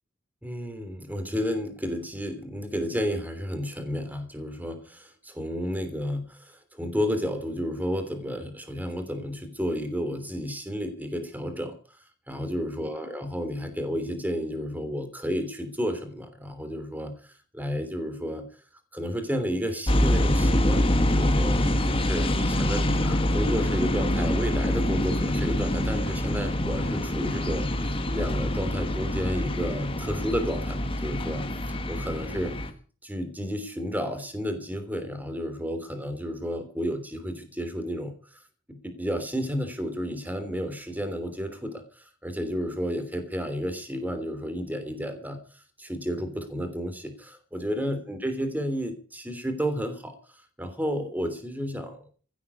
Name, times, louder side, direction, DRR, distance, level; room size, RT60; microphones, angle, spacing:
voice 1, 0.4-11.8 12.3-18.4 18.9-31.5 31.9-32.7 33.0-38.4 38.7-50.2 50.6-52.0, equal, 10° right, 9 dB, 3.1 m, -32 dB
sound 1, 19.9-32.7, left 1 dB, 30° left, 1.6 m, -25 dB
16.0 x 8.5 x 8.4 m, 0.41 s
head